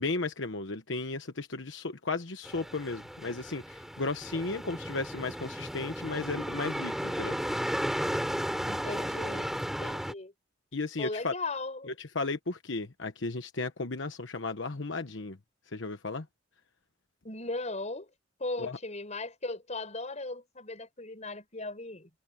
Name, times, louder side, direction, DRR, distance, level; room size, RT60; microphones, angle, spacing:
voice 1, 0.0-7.4 10.7-11.3 11.9-15.4 15.7-16.3 18.6-18.8, left 3 dB, 80° left, 1.2 m, -34 dB
sound 1, 2.4-10.1, equal, ahead, 5.9 m, -34 dB
voice 2, 8.6-9.5 9.8-10.3 11.0-11.9 17.2-18.1 18.4-22.1, left 2 dB, 40° left, 5.8 m, -37 dB
head